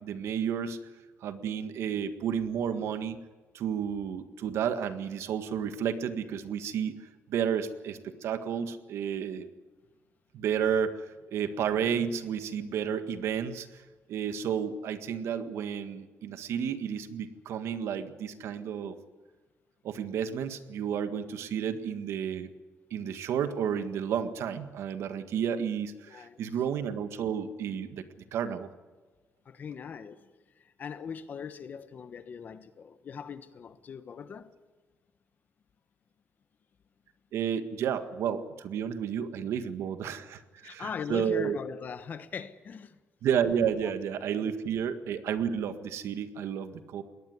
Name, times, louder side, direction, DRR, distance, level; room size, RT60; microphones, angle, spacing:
voice 1, 0.0-0.8 1.2-3.2 3.5-7.0 7.3-9.5 10.3-13.7 14.1-19.0 19.8-22.5 22.9-28.0 28.3-28.7 37.3-41.6 43.2-47.0, right 8 dB, 80° right, 1.7 m, -31 dB
voice 2, 26.1-26.4 29.4-30.3 30.6-34.5 40.6-43.0 43.8-43.9 44.4-44.6, left 6 dB, 40° left, 1.2 m, -40 dB
21.0 x 18.5 x 9.5 m
cardioid pair, 170°, 5 cm